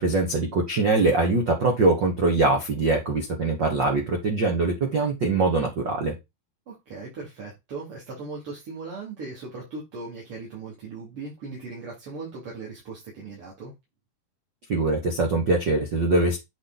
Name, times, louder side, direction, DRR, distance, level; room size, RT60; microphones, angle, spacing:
voice 1, 0.0-6.1 14.7-16.4, right 3 dB, 70° right, 2 dB, 1.0 m, -23 dB
voice 2, 6.7-13.7, right 3 dB, 40° right, -4 dB, 3.1 m, -38 dB
8.2 x 5.0 x 4.0 m, 0.21 s
omnidirectional pair, 4.6 m